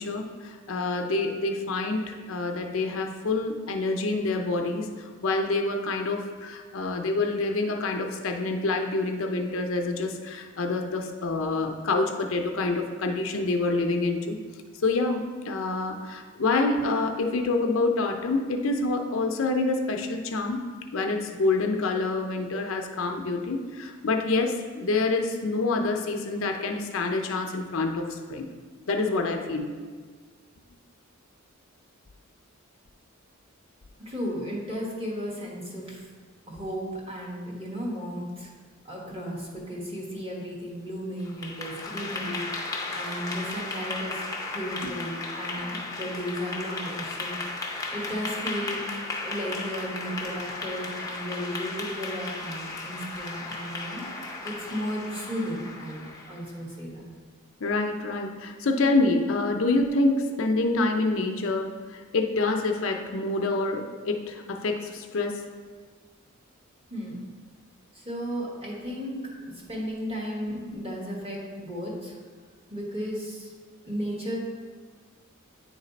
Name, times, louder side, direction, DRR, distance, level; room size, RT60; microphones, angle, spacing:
voice 1, 0.0-14.4 14.8-20.6 20.9-28.5 28.9-29.7 44.8-44.9 45.6-45.7 57.6-65.4 70.7-70.8, left 3 dB, 60° left, 4 dB, 0.5 m, -27 dB
voice 2, 34.0-36.1 36.5-38.5 38.8-48.8 49.2-57.1 66.9-67.2 67.9-69.2 69.5-72.2 72.7-73.5 73.8-74.4, equal, 25° right, -4 dB, 1.4 m, -35 dB
Clapping / Applause, 41.2-56.5, left 3 dB, 15° left, 0.6 m, -35 dB
9.5 x 3.2 x 4.0 m, 1.5 s
head